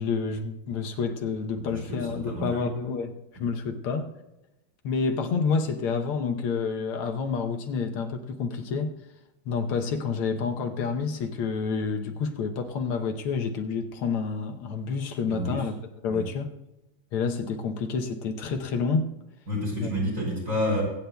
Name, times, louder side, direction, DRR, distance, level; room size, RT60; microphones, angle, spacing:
voice 1, 0.0-3.1 3.4-4.1 4.8-8.9 9.4-15.7 16.0-16.5 17.1-19.1 19.8-19.9, left 5 dB, 85° left, 1.8 m, -29 dB
voice 2, 1.5-2.8 15.3-15.7 16.1-16.2 19.5-20.8, equal, 35° right, 5.5 m, -30 dB
23.0 x 9.1 x 2.3 m
omnidirectional pair, 2.3 m